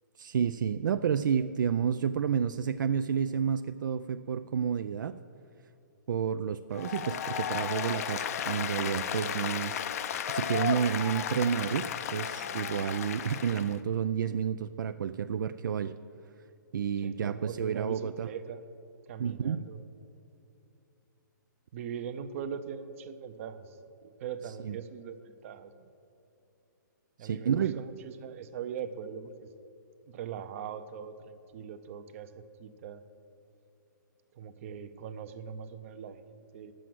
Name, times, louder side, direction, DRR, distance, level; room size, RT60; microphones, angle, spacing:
voice 1, 0.2-5.2 6.1-15.9 16.7-18.3 19.2-19.6 24.6-24.8 27.2-27.8, right 7 dB, 70° right, 10 dB, 0.4 m, -30 dB
Applause, 6.7-13.8, left 8 dB, 50° left, 0.5 m, -34 dB
voice 2, 17.0-18.6 19.1-19.8 21.7-25.9 27.2-29.5 30.1-33.0 34.3-36.7, right 7 dB, 40° right, 10 dB, 0.7 m, -41 dB
10.0 x 7.6 x 7.7 m, 2.8 s
hypercardioid pair, 155°, 11 cm